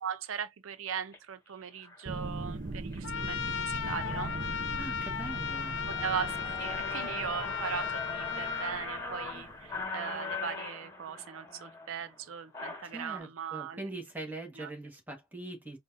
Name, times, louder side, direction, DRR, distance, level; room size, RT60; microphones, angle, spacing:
voice 1, 0.0-4.3 5.9-13.9 14.5-14.7, right 7 dB, 90° right, 0.5 m, -39 dB
sound 1, 1.0-1.2 1.8-2.1 2.5-3.0 3.4-3.5 3.8-13.2, left 3 dB, 15° left, 1.6 m, -41 dB
sound 2, 2.1-9.8, right 2 dB, 40° right, 0.6 m, -41 dB
Trumpet, 3.0-8.7, left 7 dB, 60° left, 0.5 m, -36 dB
voice 2, 4.8-5.8 12.9-15.8, right 2 dB, 10° right, 1.4 m, -42 dB
5.1 x 2.6 x 2.6 m
head